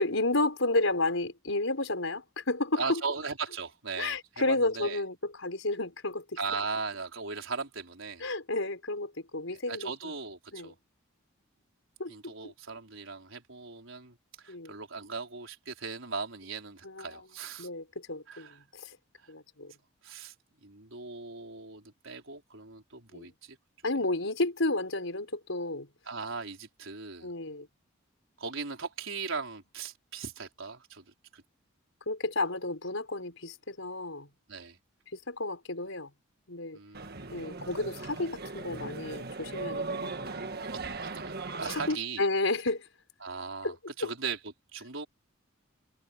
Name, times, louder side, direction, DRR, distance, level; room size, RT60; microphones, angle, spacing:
voice 1, 0.0-3.0 4.0-6.2 8.2-9.9 10.5-10.7 12.0-12.5 14.5-14.7 16.8-17.1 17.6-19.0 19.3-19.7 23.1-23.3 23.8-25.9 27.2-27.7 32.1-34.3 35.1-36.1 36.5-36.8 37.3-40.7 41.7-42.9 43.6-43.7 44.0-44.1, left 2 dB, 75° left, 4.8 m, -32 dB
voice 2, 2.8-4.2 4.4-5.0 6.4-8.3 9.7-10.7 12.1-17.7 18.3-18.6 19.2-19.3 20.0-20.3 20.6-23.6 26.0-27.3 28.4-31.4 34.5-34.8 36.7-37.5 40.7-42.2 43.2-45.1, right 4 dB, 70° right, 4.6 m, -38 dB
sound 1, 36.9-41.9, right 3 dB, 50° right, 1.6 m, -38 dB
head